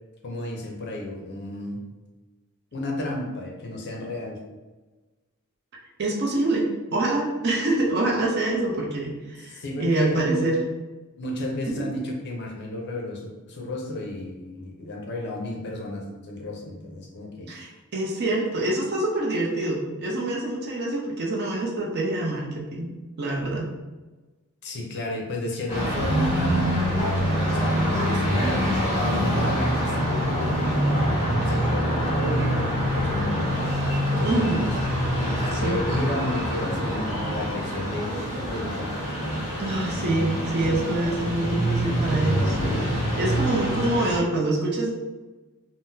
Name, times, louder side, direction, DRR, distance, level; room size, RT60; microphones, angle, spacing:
voice 1, 0.2-1.8 2.7-4.4 9.5-10.5 11.2-17.5 24.6-26.8 27.5-28.6 29.0-30.9 31.5-33.6 34.2-34.7 35.3-38.1 38.5-39.0, left 1 dB, 50° left, 0 dB, 0.5 m, -32 dB
voice 2, 6.0-10.6 11.8-11.9 17.5-22.9 23.2-23.7 34.2-34.6 35.5-36.0 39.6-42.6 43.2-44.9, right 2 dB, 45° right, -2 dB, 0.6 m, -26 dB
sound 1, 25.7-44.2, equal, 25° left, 1.4 m, -25 dB
3.8 x 2.0 x 2.6 m, 1.2 s
head